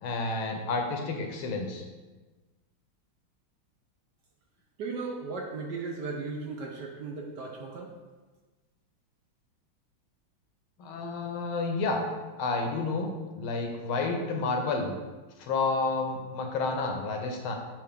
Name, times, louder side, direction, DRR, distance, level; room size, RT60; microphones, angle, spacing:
voice 1, 0.0-1.8 10.8-12.0 12.4-14.9 15.4-17.5, left 3 dB, 80° left, 3 dB, 1.6 m, -30 dB
voice 2, 4.8-7.9, right 4 dB, 65° right, 0 dB, 1.1 m, -36 dB
7.0 x 3.0 x 5.0 m, 1.3 s
omnidirectional pair, 2.3 m